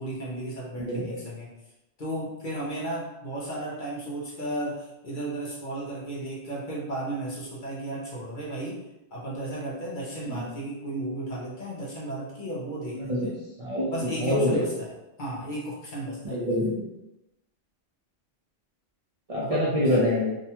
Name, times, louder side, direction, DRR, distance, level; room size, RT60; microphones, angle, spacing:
voice 1, 0.0-1.5 2.0-8.8 9.1-13.1 13.9-14.9 15.2-16.4 19.4-19.9, right 1 dB, 50° left, -5 dB, 0.7 m, -34 dB
voice 2, 0.8-1.2 10.3-10.4 12.9-13.3 13.6-14.6 16.2-16.9 19.3-20.4, left 1 dB, 50° right, -7 dB, 0.4 m, -26 dB
2.7 x 2.2 x 2.8 m, 0.93 s
omnidirectional pair, 1.3 m